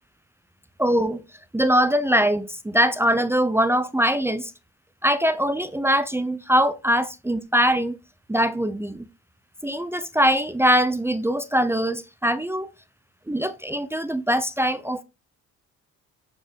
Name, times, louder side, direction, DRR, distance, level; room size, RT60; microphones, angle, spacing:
voice 1, 0.8-1.2 1.5-4.5 5.0-8.0 8.3-9.1 9.6-12.7 13.3-15.0, equal, 10° right, 0.7 m, -22 dB
8.9 x 4.6 x 4.5 m
cardioid pair, 90°, 30 cm